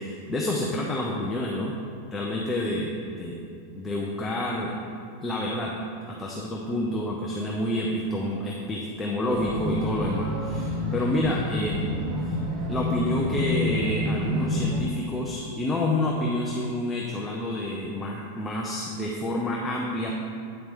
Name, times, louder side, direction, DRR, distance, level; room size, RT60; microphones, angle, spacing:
voice 1, 0.0-1.7 2.1-3.4 3.7-4.8 5.2-5.7 6.1-11.8 12.2-12.4 12.7-20.1, left 1 dB, 10° left, -3 dB, 0.5 m, -28 dB
sound 1, 9.3-14.8, equal, 25° right, 1.0 m, -28 dB
8.9 x 7.7 x 3.6 m, 2.3 s
supercardioid pair, 175°, 0 cm